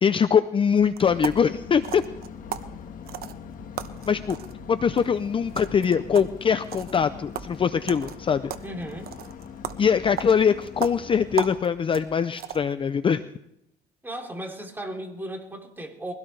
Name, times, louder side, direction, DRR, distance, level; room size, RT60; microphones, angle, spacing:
voice 1, 0.0-2.0 4.1-4.4 4.7-8.5 9.8-13.2, left 7 dB, 30° left, 12 dB, 0.6 m, -22 dB
sound 1, 0.7-12.8, right 10 dB, 65° right, 1.0 m, -38 dB
sound 2, 1.0-11.5, left 7 dB, 55° left, 1.5 m, -42 dB
voice 2, 8.6-9.1 14.0-16.1, right 1 dB, 10° right, 1 dB, 3.2 m, -36 dB
22.5 x 16.5 x 3.3 m, 0.78 s
cardioid pair, 110°, 17 cm